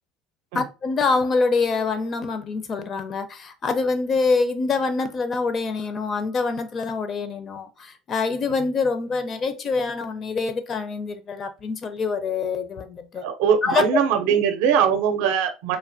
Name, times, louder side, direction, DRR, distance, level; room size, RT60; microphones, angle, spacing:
voice 1, 0.5-13.2 13.6-13.8, left 4 dB, 35° left, 0.5 m, -25 dB
voice 2, 13.2-15.8, right 8 dB, 75° right, 0.5 m, -21 dB
3.2 x 2.2 x 2.5 m
supercardioid pair, 115°, 0 cm